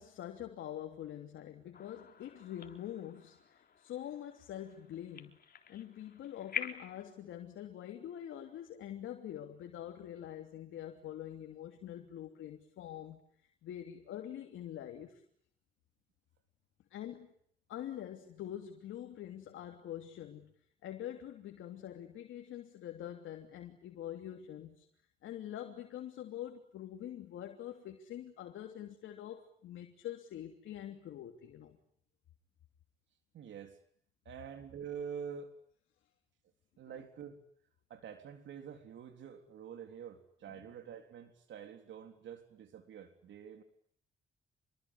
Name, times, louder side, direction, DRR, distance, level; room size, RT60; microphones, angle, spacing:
voice 1, 0.0-5.4 5.7-15.2 16.9-17.3 17.7-20.5 20.8-24.9 25.2-31.8, left 11 dB, 80° left, 4 dB, 3.1 m, -45 dB
sound 1, 1.7-7.0, left 7 dB, 50° left, 3.8 m, -46 dB
voice 2, 33.3-33.8 34.3-35.5 36.8-37.4 37.9-43.6, right 7 dB, 70° right, 7 dB, 3.8 m, -47 dB
27.5 x 22.5 x 9.8 m, 0.65 s
cardioid pair, 90°, 20 cm